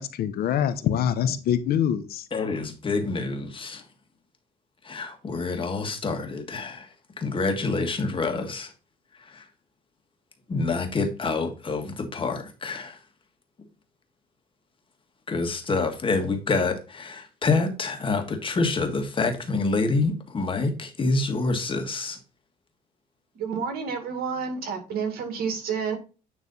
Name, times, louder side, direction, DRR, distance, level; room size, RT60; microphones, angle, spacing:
voice 1, 0.0-2.3, left 9 dB, 65° left, 0.8 m, -25 dB
voice 2, 2.3-3.8 4.8-6.9 7.2-8.7 9.2-9.5 10.5-13.0 15.3-22.2, left 3 dB, 30° left, 1.6 m, -27 dB
voice 3, 23.4-26.0, right 6 dB, 65° right, 2.1 m, -29 dB
9.5 x 3.2 x 4.0 m
cardioid pair, 110°, 17 cm